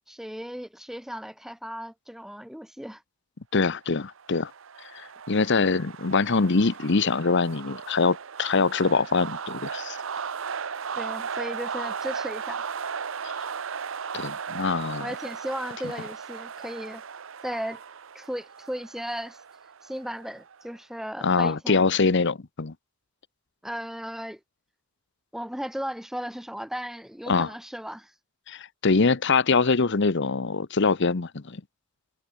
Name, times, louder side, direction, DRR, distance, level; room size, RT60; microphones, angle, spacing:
voice 1, 0.1-3.0 11.0-12.6 15.0-17.0 17.4-17.8 18.1-19.4 19.8-21.8 23.6-24.4 25.3-28.1, equal, ahead, 0.8 m, -36 dB
voice 2, 3.5-4.5 4.9-10.0 14.1-15.1 21.2-22.7 27.3-27.5 28.5-31.6, left 4 dB, 55° left, 0.9 m, -24 dB
sound 1, 4.0-20.6, right 6 dB, 65° right, 0.8 m, -36 dB
head